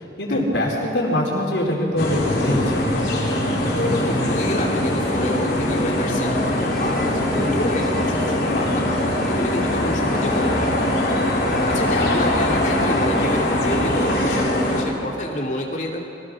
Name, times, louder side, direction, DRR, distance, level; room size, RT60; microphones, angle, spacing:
voice 1, 0.2-2.8 11.9-12.1, left 1 dB, 85° left, -1 dB, 4.6 m, -23 dB
sound 1, 2.0-14.8, left 1 dB, 60° left, 4.1 m, -22 dB
voice 2, 3.7-10.6 11.7-16.0, left 1 dB, 45° left, -1 dB, 2.8 m, -28 dB
sound 2, 6.1-13.3, equal, ahead, 1.6 m, -36 dB
24.0 x 18.0 x 6.4 m, 2.6 s
head